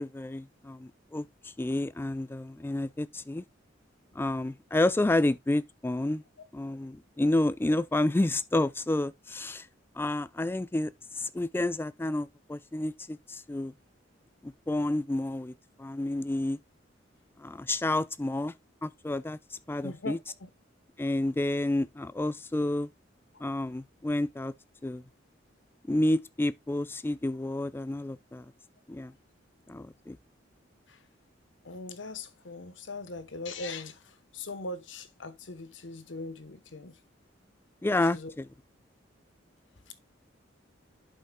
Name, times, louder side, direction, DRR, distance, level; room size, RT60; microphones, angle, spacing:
voice 1, 0.0-3.4 4.2-6.2 6.5-9.7 10.0-13.7 14.4-15.5 15.8-16.6 17.4-18.5 18.8-20.2 21.0-22.9 23.4-24.5 24.8-25.0 25.9-28.5 28.9-29.1 29.7-30.2 37.8-38.5, left 1 dB, 10° left, 0.3 m, -30 dB
voice 2, 19.8-20.5 30.9-31.0 31.6-37.0 38.1-38.3 39.9-40.0, left 3 dB, 70° left, 1.0 m, -40 dB
11.5 x 5.4 x 2.2 m
head